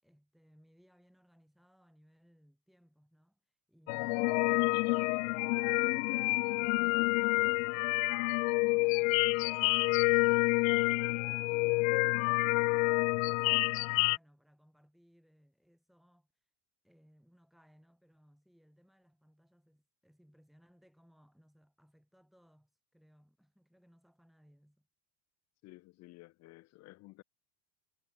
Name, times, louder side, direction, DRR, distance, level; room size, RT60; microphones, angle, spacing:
voice 1, 0.0-3.4 3.7-8.3 8.6-16.3 16.8-24.9, equal, ahead, 7.2 m, -66 dB
sound 1, 3.9-14.2, left 29 dB, 65° left, 0.6 m, -28 dB
voice 2, 25.6-27.2, left 20 dB, 35° left, 1.6 m, -54 dB
cardioid pair, 180°, 43 cm